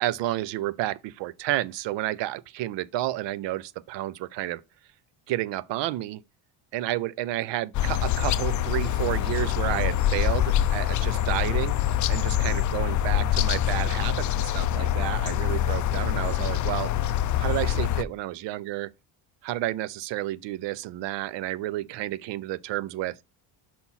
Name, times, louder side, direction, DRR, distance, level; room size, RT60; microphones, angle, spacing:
voice 1, 0.0-4.6 5.3-6.2 6.7-11.7 12.1-16.9 17.4-18.9 19.4-23.2, right 15 dB, 65° right, 0.6 m, -30 dB
sound 1, 7.7-18.0, left 11 dB, 40° left, 0.4 m, -25 dB
5.7 x 4.3 x 5.6 m
cardioid pair, 140°, 47 cm